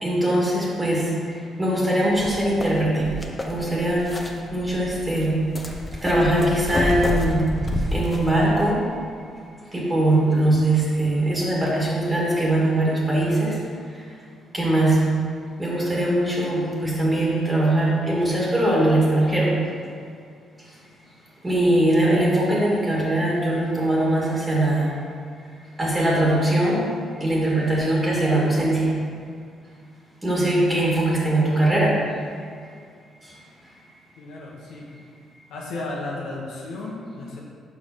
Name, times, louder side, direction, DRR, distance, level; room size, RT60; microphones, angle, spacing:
voice 1, 0.0-3.1 3.5-4.1 4.5-5.5 6.0-7.6 7.9-8.8 9.7-13.6 14.5-15.1 15.6-19.6 21.4-24.9 25.8-26.8 27.2-29.0 30.2-32.0, right 1 dB, 20° right, -5 dB, 1.7 m, -21 dB
sound 1, 2.1-8.7, left 1 dB, 20° left, 0.8 m, -29 dB
voice 2, 34.2-34.9 35.5-37.4, left 2 dB, 85° left, -4 dB, 1.3 m, -34 dB
5.4 x 4.8 x 5.8 m, 2.2 s
cardioid pair, 90°, 0 cm